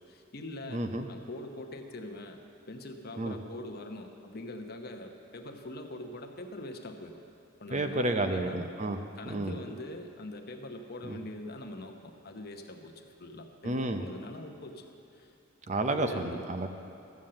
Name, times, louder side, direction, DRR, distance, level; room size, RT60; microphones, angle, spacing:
voice 1, 0.1-2.4 2.7-7.1 7.6-8.6 9.2-12.9 13.2-14.9 15.1-15.3 15.9-16.4, left 1 dB, 50° left, 4 dB, 0.9 m, -43 dB
voice 2, 0.7-1.1 3.2-3.3 7.7-9.0 9.3-9.6 11.0-11.2 13.6-14.0 15.7-16.7, right 2 dB, 35° right, 6 dB, 0.6 m, -31 dB
13.0 x 7.3 x 7.7 m, 2.6 s
head